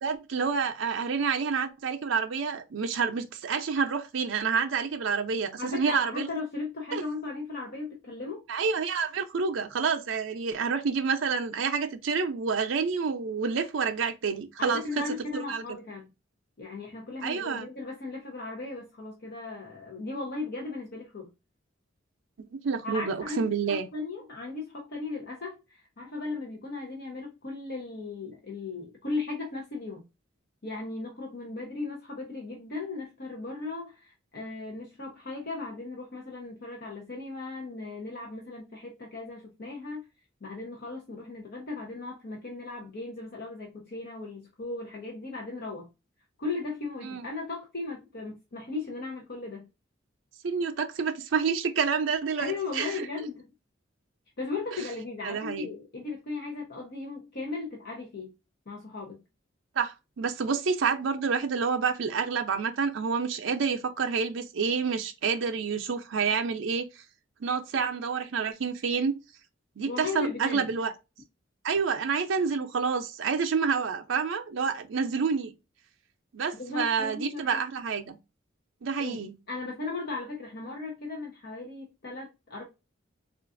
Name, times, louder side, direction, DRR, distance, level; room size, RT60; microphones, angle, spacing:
voice 1, 0.0-6.3 6.9-7.0 8.5-15.0 15.3-15.6 17.2-17.7 22.5-23.9 47.0-47.3 50.4-53.1 55.2-55.7 59.8-67.0 67.4-69.1 69.8-70.9 71.6-75.5 76.3-78.2 78.8-79.3, right 5 dB, 75° right, 0.5 m, -28 dB
voice 2, 5.6-8.4 14.6-16.1 16.6-21.3 22.8-30.0 30.6-40.1 40.4-45.9 46.4-49.7 52.4-53.5 54.4-58.3 58.7-59.2 69.9-70.7 76.5-77.6 79.0-79.2 79.5-82.6, left 3 dB, 55° left, 0.8 m, -37 dB
3.8 x 2.5 x 2.4 m
head